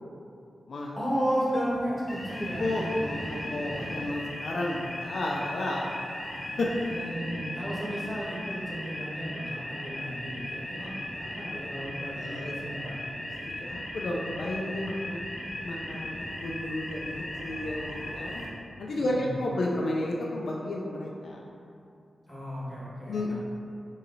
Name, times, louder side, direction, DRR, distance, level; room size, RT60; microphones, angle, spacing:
voice 1, 0.9-3.5 6.8-10.9 11.2-13.0 19.0-19.3 22.3-23.3, equal, 5° left, -10 dB, 1.3 m, -34 dB
sound 1, 2.1-18.5, left 1 dB, 25° left, 0.7 m, -37 dB
voice 2, 2.6-6.1 6.6-6.9 10.8-10.9 12.1-12.5 13.3-15.3 15.6-17.1 17.4-18.4 18.8-21.4 23.1-23.3, left 1 dB, 70° left, -2 dB, 0.3 m, -32 dB
4.1 x 2.7 x 2.6 m, 2.6 s
wide cardioid pair, 110°, 0 cm